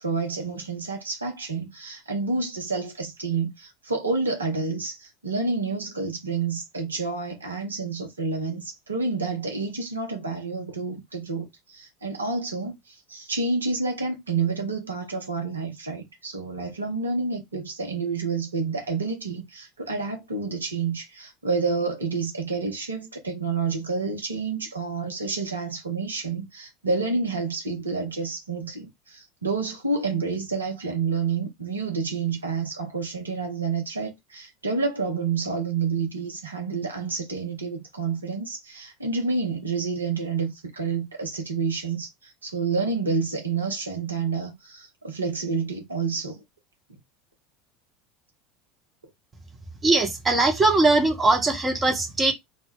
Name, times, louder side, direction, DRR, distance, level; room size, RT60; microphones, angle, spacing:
voice 1, 0.0-46.4, right 4 dB, 80° right, 0.7 m, -29 dB
voice 2, 49.8-52.3, right 2 dB, 20° right, 0.9 m, -20 dB
2.2 x 2.1 x 3.5 m
figure-of-eight pair, 75°, 0 cm